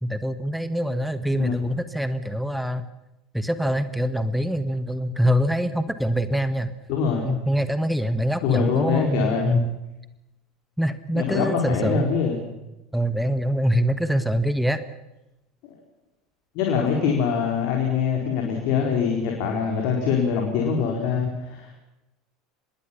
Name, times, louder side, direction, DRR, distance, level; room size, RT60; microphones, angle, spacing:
voice 1, 0.0-2.9 3.3-6.7 7.2-9.7 10.8-12.1 12.9-14.8, equal, ahead, 12 dB, 1.5 m, -24 dB
voice 2, 6.9-7.4 8.4-9.6 11.1-12.4 16.5-21.7, left 6 dB, 55° left, 1 dB, 4.4 m, -24 dB
25.5 x 21.0 x 5.8 m, 0.96 s
figure-of-eight pair, 70°, 0 cm